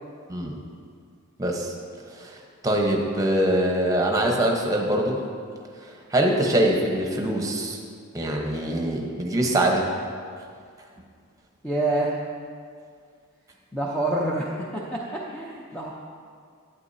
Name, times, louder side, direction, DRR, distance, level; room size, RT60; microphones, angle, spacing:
voice 1, 1.4-1.7 2.2-2.3 2.6-5.2 6.1-7.8 8.1-9.9, right 1 dB, 15° right, 0 dB, 1.0 m, -23 dB
voice 2, 11.6-12.2 13.7-15.9, right 2 dB, 5° left, -4 dB, 0.6 m, -27 dB
11.5 x 9.1 x 2.7 m, 2.2 s
head